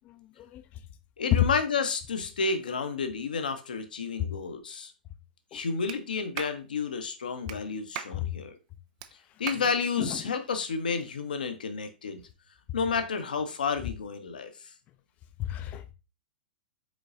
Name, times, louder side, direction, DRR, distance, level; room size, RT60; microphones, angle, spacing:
voice 1, 1.2-4.9 5.5-8.6 9.4-12.2 12.7-14.5, left 5 dB, 65° left, 0.7 m, -31 dB
Clapping, 5.9-6.0 6.4-6.6 7.5-7.6 8.0-8.2 9.0-9.1 9.5-9.7, right 11 dB, 45° right, 0.4 m, -37 dB
voice 2, 15.4-15.9, left 13 dB, 30° left, 0.5 m, -30 dB
5.2 x 3.9 x 2.4 m
figure-of-eight pair, 100°, 5 cm